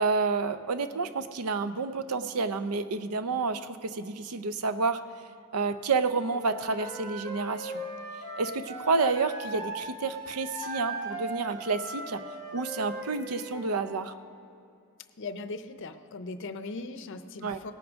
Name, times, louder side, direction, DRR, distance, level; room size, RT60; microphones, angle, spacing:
voice 1, 0.0-5.0 5.5-7.8 8.4-12.2 12.5-14.1 17.4-17.6, right 4 dB, 85° right, 11 dB, 0.6 m, -29 dB
Wind instrument woodwind instrument, 6.3-9.8 10.1-13.9, right 2 dB, 50° right, 2.0 m, -39 dB
voice 2, 15.2-17.7, left 3 dB, 55° left, 10 dB, 0.5 m, -39 dB
18.0 x 10.0 x 3.6 m, 2.5 s
head